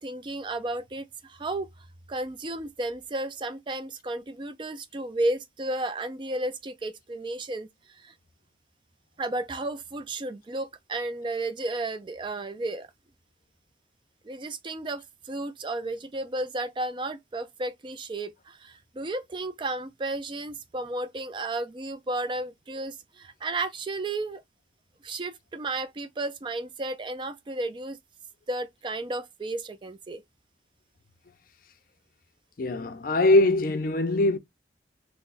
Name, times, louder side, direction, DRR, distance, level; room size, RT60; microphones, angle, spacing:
voice 1, 0.0-8.1 9.2-12.9 14.2-24.4 25.0-28.0 28.5-30.2, right 2 dB, 25° right, 0.3 m, -33 dB
voice 2, 32.6-34.4, left 2 dB, 50° left, 0.4 m, -22 dB
3.9 x 2.1 x 2.5 m
head